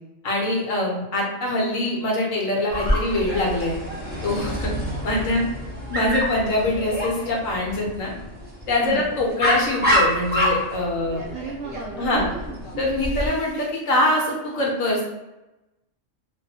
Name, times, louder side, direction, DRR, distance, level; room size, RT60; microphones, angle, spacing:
voice 1, 0.2-3.7 4.2-4.7 5.0-5.4 5.9-8.1 8.7-11.2 12.0-12.3 12.8-15.0, left 1 dB, 80° left, -2 dB, 1.1 m, -23 dB
Dog, 2.7-13.3, equal, 10° right, 0.5 m, -27 dB
voice 2, 11.3-12.8, right 2 dB, 70° right, -4 dB, 0.9 m, -34 dB
2.5 x 2.1 x 2.7 m, 0.98 s
omnidirectional pair, 1.4 m